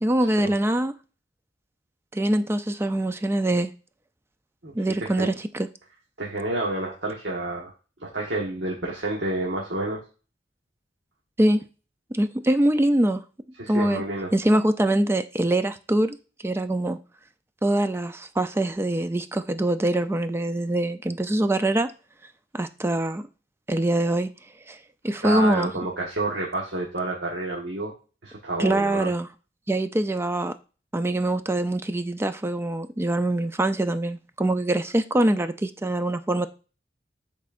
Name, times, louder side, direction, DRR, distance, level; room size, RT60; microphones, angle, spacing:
voice 1, 0.0-0.9 2.1-3.7 4.8-5.7 11.4-11.6 12.1-13.2 13.7-14.0 14.3-16.2 16.4-17.0 17.6-21.9 22.5-23.2 23.7-24.3 24.7-24.8 25.0-25.7 28.6-29.3 29.7-30.5 30.9-36.5, right 1 dB, 15° right, 0.4 m, -23 dB
voice 2, 5.0-5.3 6.2-7.7 8.0-10.0 13.6-14.3 25.2-27.9 28.2-29.1, right 2 dB, 75° right, 1.4 m, -29 dB
10.5 x 4.3 x 2.5 m
head